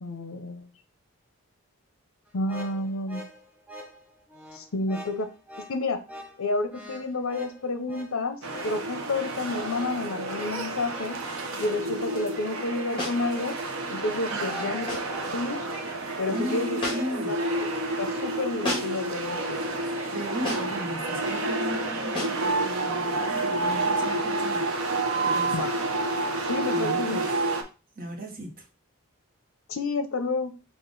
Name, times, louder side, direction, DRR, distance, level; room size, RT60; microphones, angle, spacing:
voice 1, 0.0-0.7 2.3-3.2 4.5-5.3 5.6-6.0 6.4-11.2 11.6-13.5 13.9-15.0 15.3-15.6 16.2-16.8 17.1-17.5 17.7-19.6 25.5-25.8 26.5-27.2 29.7-30.5, left 2 dB, 70° left, 0.6 m, -30 dB
sound 1, 2.3-21.7, equal, 5° right, 0.6 m, -46 dB
sound 2, 8.4-27.6, right 2 dB, 75° right, 0.8 m, -29 dB
sound 3, 13.0-13.3 14.9-15.2 16.8-17.2 18.6-19.1 20.4-20.8 22.1-22.5, left 1 dB, 25° left, 1.7 m, -32 dB
voice 2, 14.3-14.7 16.3-17.4 20.0-24.8 25.2-25.7 26.7-27.2 28.0-28.7, right 1 dB, 40° right, 1.1 m, -36 dB
5.1 x 2.5 x 3.9 m
head